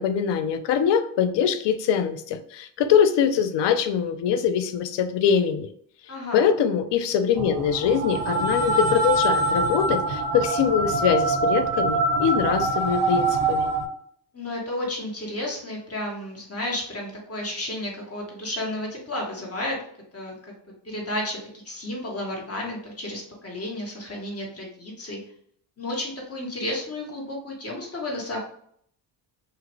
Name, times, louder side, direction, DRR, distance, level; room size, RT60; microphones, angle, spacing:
voice 1, 0.0-5.7 6.3-13.7, left 7 dB, 60° left, 10 dB, 0.6 m, -23 dB
voice 2, 6.1-6.4 14.3-19.8 20.1-20.5 20.8-25.2 25.8-28.4, left 1 dB, 30° left, -2 dB, 1.4 m, -32 dB
sound 1, 7.4-13.9, right 2 dB, 50° right, 0.9 m, -24 dB
2.8 x 2.5 x 3.0 m, 0.64 s
supercardioid pair, 55°, 49 cm